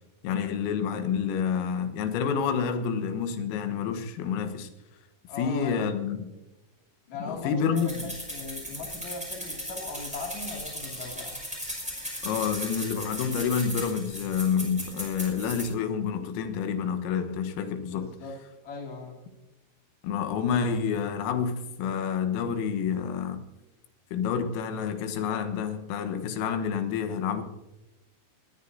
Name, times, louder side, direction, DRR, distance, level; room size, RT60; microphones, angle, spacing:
voice 1, 0.2-4.7 5.4-6.3 7.3-7.9 12.2-18.1 20.0-23.4 24.1-27.4, left 7 dB, 90° left, 3.9 m, -28 dB
voice 2, 5.3-5.9 7.1-11.4 17.8-18.4 18.6-19.1, left 3 dB, 45° left, 3.1 m, -39 dB
sound 1, 7.8-15.6, equal, ahead, 4.8 m, -37 dB
20.5 x 18.5 x 2.7 m
omnidirectional pair, 5.8 m